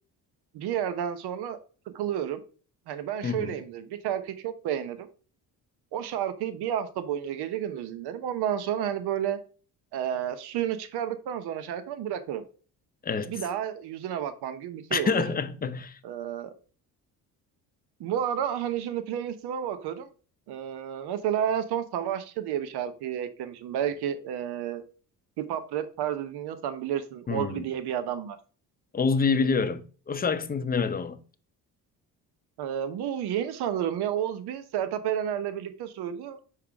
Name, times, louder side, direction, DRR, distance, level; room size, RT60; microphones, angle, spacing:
voice 1, 0.5-1.6 1.9-2.4 2.9-5.1 5.9-9.4 9.9-12.4 13.3-15.2 16.0-16.5 18.0-20.1 20.5-24.8 25.4-28.4 32.6-36.4, right 9 dB, 80° right, 0.9 m, -31 dB
voice 2, 14.9-16.0 27.3-27.6 28.9-29.8 30.1-31.2, left 5 dB, 25° left, 0.7 m, -27 dB
5.7 x 4.8 x 3.4 m
cardioid pair, 100°, 39 cm